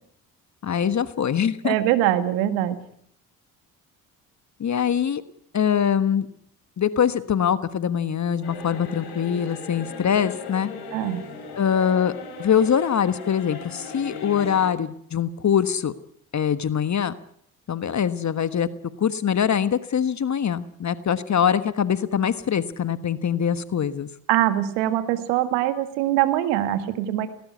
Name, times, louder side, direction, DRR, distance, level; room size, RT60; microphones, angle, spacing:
voice 1, 0.6-1.8 4.6-5.2 5.5-6.3 6.8-10.7 11.6-12.1 12.4-15.9 16.3-17.1 17.7-18.7 19.0-24.1, left 8 dB, 40° left, 13 dB, 1.4 m, -23 dB
voice 2, 1.6-2.8 10.9-11.2 24.3-27.3, right 13 dB, 80° right, 10 dB, 1.9 m, -23 dB
sound 1, 8.4-14.7, left 4 dB, 65° left, 7.2 m, -38 dB
19.0 x 18.5 x 9.6 m, 0.68 s
hypercardioid pair, 50°, 43 cm